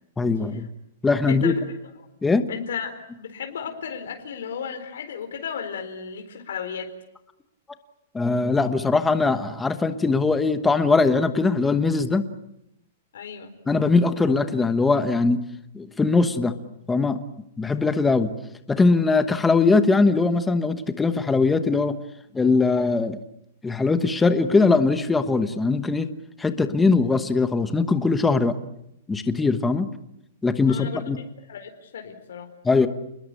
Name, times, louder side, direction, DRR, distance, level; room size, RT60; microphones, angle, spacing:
voice 1, 0.2-0.7 1.0-1.6 2.2-2.4 8.1-12.3 13.7-15.4 15.7-16.5 16.9-17.2 17.6-18.3 18.7-22.0 22.3-23.2 23.6-26.1 26.4-28.5 29.1-29.9 30.4-31.2 32.6-32.9, left 3 dB, 5° left, 9 dB, 1.2 m, -21 dB
voice 2, 2.5-6.9 13.1-13.5 30.7-32.5, left 7 dB, 75° left, 5 dB, 4.4 m, -34 dB
29.5 x 21.5 x 8.5 m, 0.79 s
hypercardioid pair, 170°, 0 cm